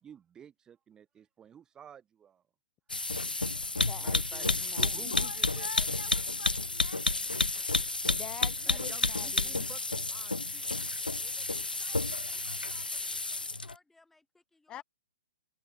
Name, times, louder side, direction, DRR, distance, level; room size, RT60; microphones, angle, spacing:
voice 1, 0.0-2.4 4.0-4.5 4.8-5.9 7.4-7.6 8.6-10.9, right 8 dB, 15° right, 1.1 m, -52 dB
sound 1, 2.9-13.7, left 3 dB, 90° left, 0.5 m, -31 dB
voice 2, 3.8-5.1 8.0-9.7 14.7-14.8, left 12 dB, 20° left, 1.7 m, -46 dB
voice 3, 5.0-7.7, left 6 dB, 70° left, 2.3 m, -46 dB
voice 4, 11.1-14.8, left 2 dB, 5° left, 5.2 m, -63 dB
figure-of-eight pair, 120°, 5 cm